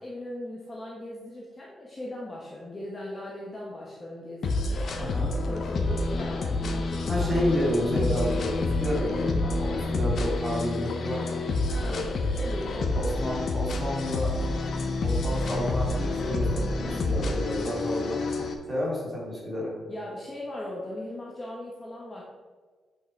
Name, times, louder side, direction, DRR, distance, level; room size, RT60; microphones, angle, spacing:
voice 1, 0.0-4.9 5.3-7.5 11.7-13.0 16.8-17.1 19.9-22.2, left 1 dB, 20° left, -4 dB, 1.1 m, -39 dB
sound 1, 4.4-18.5, left 2 dB, 45° left, 0.9 m, -28 dB
voice 2, 5.0-5.3 7.1-11.4 11.7-12.1 12.9-14.7 15.0-18.2 18.7-19.7, left 1 dB, 5° right, -6 dB, 2.7 m, -30 dB
8.4 x 5.8 x 4.5 m, 1.5 s
wide cardioid pair, 180°, 0 cm